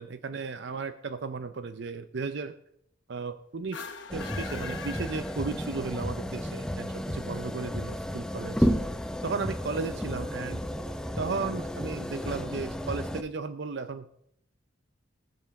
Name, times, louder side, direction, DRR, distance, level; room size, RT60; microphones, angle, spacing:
voice 1, 0.0-2.5 3.1-3.8 4.1-8.7 9.2-10.6 11.2-14.1, right 4 dB, 55° right, 11 dB, 0.5 m, -35 dB
sound 1, 3.6-5.9, left 6 dB, 60° left, 1.1 m, -42 dB
sound 2, 4.1-13.2, equal, 5° left, 0.6 m, -32 dB
19.5 x 6.9 x 4.7 m, 0.73 s
head